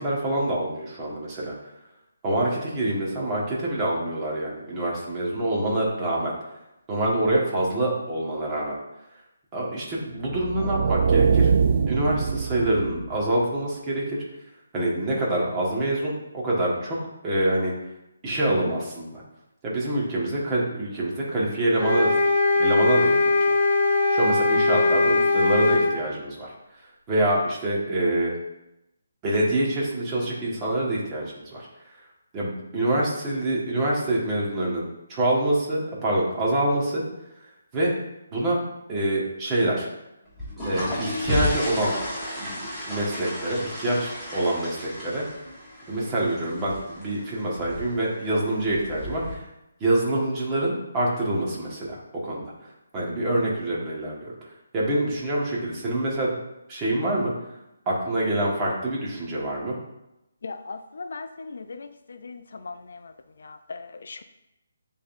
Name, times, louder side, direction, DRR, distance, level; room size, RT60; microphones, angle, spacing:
voice 1, 0.0-1.5 2.2-6.3 6.9-8.8 9.5-11.5 11.9-14.2 14.7-17.0 17.2-17.7 18.2-19.2 19.6-22.1 22.6-23.6 24.1-26.5 27.1-28.3 29.2-31.7 32.3-37.0 37.7-37.9 38.3-38.6 38.9-39.9 40.6-41.9 42.4-42.6 42.9-45.2 45.9-49.5 49.8-56.4 56.7-57.3 57.8-59.8, right 1 dB, 20° right, -5 dB, 1.6 m, -26 dB
sound 1, 10.3-13.2, right 6 dB, 50° right, 0.3 m, -22 dB
sound 2, 21.8-26.0, left 2 dB, 30° left, 1.3 m, -20 dB
sound 3, 40.3-49.3, left 1 dB, ahead, 1.7 m, -33 dB
voice 2, 60.4-61.9 62.2-62.4 62.7-62.8 63.7-63.8 64.1-64.2, left 4 dB, 65° left, 9 dB, 0.4 m, -36 dB
9.5 x 3.7 x 2.7 m, 0.90 s
hypercardioid pair, 155°, 0 cm